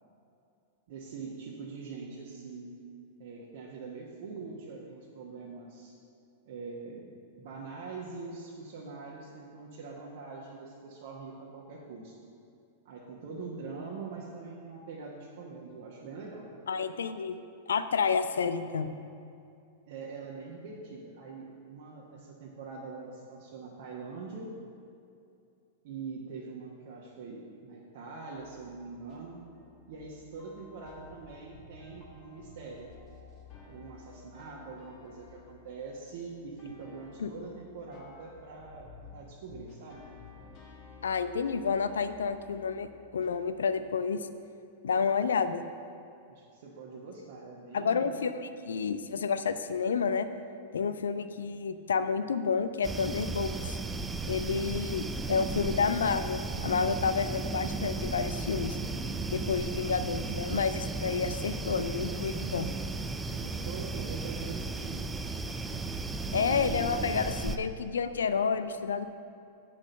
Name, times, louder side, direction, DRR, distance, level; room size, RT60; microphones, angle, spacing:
voice 1, 0.9-2.7 3.2-6.0 6.4-12.2 12.8-16.5 19.9-24.5 25.8-29.4 29.9-32.9 33.7-40.0 46.3-48.2 63.3-65.1, right 4 dB, 55° right, -4 dB, 1.1 m, -43 dB
voice 2, 16.7-17.4 17.7-18.9 37.2-37.3 41.0-42.9 43.1-44.3 44.8-45.6 47.7-50.3 50.7-53.8 54.2-58.8 59.3-62.7 66.3-69.1, left 5 dB, 70° left, 11 dB, 0.4 m, -30 dB
sound 1, 28.3-44.0, left 4 dB, 40° left, 1.7 m, -54 dB
sound 2, 52.8-67.6, right 3 dB, 15° right, 0.4 m, -35 dB
7.6 x 6.1 x 6.6 m, 2.5 s
figure-of-eight pair, 95°, 0 cm